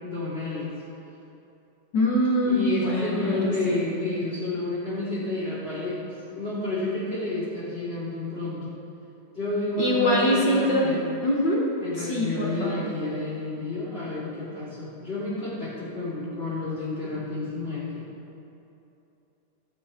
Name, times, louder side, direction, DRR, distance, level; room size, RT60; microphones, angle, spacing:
voice 1, 0.0-0.7 2.4-8.6 9.3-11.1 11.8-18.1, left 2 dB, 20° left, -9 dB, 3.1 m, -30 dB
voice 2, 1.9-3.8 9.8-10.9 11.2-11.7 12.0-12.7, equal, 55° left, -3 dB, 1.3 m, -24 dB
14.5 x 8.5 x 4.3 m, 2.9 s
omnidirectional pair, 3.3 m